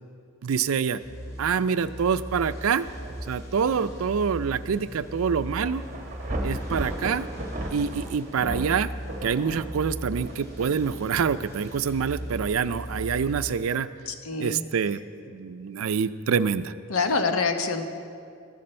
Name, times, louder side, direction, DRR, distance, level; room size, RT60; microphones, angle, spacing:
voice 1, 0.4-1.0 1.4-2.9 3.3-5.8 6.4-7.3 7.7-8.9 9.2-13.9 14.4-15.0 15.3-16.7, right 6 dB, 85° right, 14 dB, 0.4 m, -26 dB
sound 1, 1.0-13.5, equal, 15° left, 1.7 m, -39 dB
Thunder / Rain, 2.8-13.5, right 1 dB, 35° right, 1.1 m, -38 dB
voice 2, 14.1-14.6 16.9-17.8, left 4 dB, 85° left, 7 dB, 1.0 m, -26 dB
14.5 x 13.0 x 4.3 m, 2.4 s
head